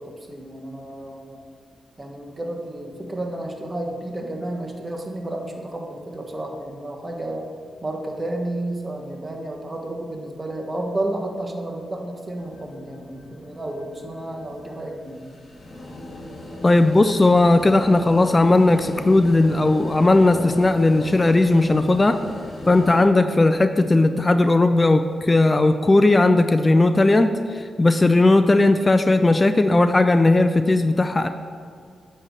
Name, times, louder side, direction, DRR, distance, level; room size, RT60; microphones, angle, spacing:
voice 1, 0.0-1.4 2.0-7.4 7.8-15.3, right 1 dB, 30° right, 2 dB, 1.3 m, -31 dB
sound 1, 12.4-23.0, left 1 dB, 50° left, 1.8 m, -37 dB
voice 2, 16.6-22.2 22.7-31.3, left 2 dB, 30° left, 9 dB, 0.4 m, -17 dB
8.8 x 3.3 x 6.3 m, 2.1 s
supercardioid pair, 40°, 0 cm